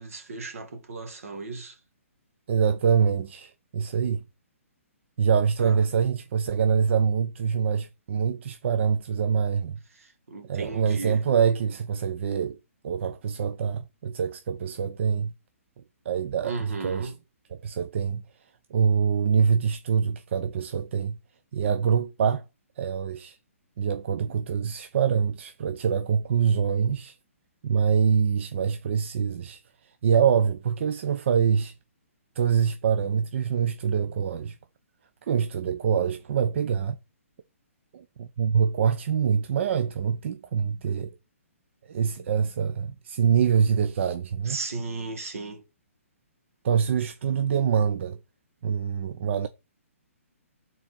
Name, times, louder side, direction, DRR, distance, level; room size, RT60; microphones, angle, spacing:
voice 1, 0.0-1.8 5.6-5.8 9.9-11.2 16.4-17.2 44.5-45.6, right 3 dB, 70° right, 1.8 m, -36 dB
voice 2, 2.5-4.2 5.2-9.8 10.5-12.6 12.8-15.3 16.1-17.1 17.5-18.2 18.7-21.2 21.5-22.4 22.8-23.4 23.8-27.2 27.6-31.7 32.4-34.6 35.3-37.0 37.9-41.1 41.9-44.6 46.6-48.2 48.6-49.5, right 7 dB, 55° right, 0.6 m, -25 dB
4.6 x 3.9 x 5.7 m
hypercardioid pair, 145°, 8 cm